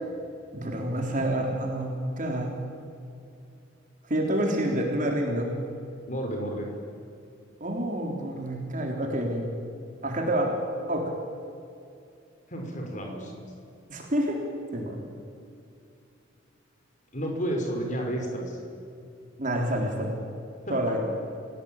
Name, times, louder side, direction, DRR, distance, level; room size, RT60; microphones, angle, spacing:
voice 1, 0.5-2.5 4.1-5.5 7.6-9.5 10.0-10.6 10.9-11.1 13.9-14.4 14.7-15.0 19.4-20.1 20.7-21.0, right 1 dB, 40° right, 1 dB, 3.6 m, -28 dB
voice 2, 6.1-6.7 12.5-13.3 17.1-18.6 20.7-20.8, right 1 dB, 40° left, 2 dB, 5.5 m, -31 dB
29.5 x 17.0 x 9.0 m, 2.5 s
head